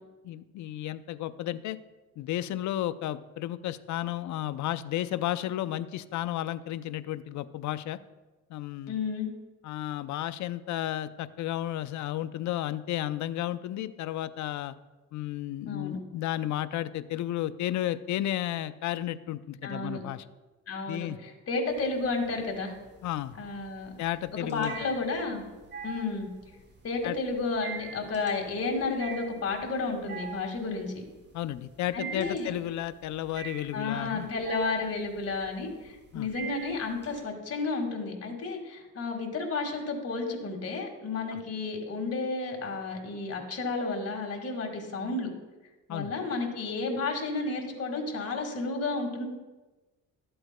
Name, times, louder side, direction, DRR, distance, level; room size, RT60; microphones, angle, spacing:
voice 1, 0.2-1.8 2.2-8.0 8.5-8.9 9.6-14.7 15.1-20.2 20.9-21.2 23.0-23.4 24.0-24.7 27.0-27.2 31.3-34.3 36.1-36.3 41.3-41.4 45.9-46.1, left 13 dB, 70° left, 14 dB, 0.5 m, -33 dB
voice 2, 8.9-9.3 15.7-16.0 19.6-20.0 20.7-22.7 23.4-24.0 24.5-25.4 25.8-26.3 26.8-31.0 31.9-32.5 33.7-45.3 45.9-49.2, left 3 dB, 55° left, 2 dB, 1.9 m, -32 dB
sound 1, 21.7-22.3 22.7-37.2, right 5 dB, 35° right, 1.7 m, -43 dB
12.5 x 7.8 x 2.2 m, 1.2 s
cardioid pair, 90°, 30 cm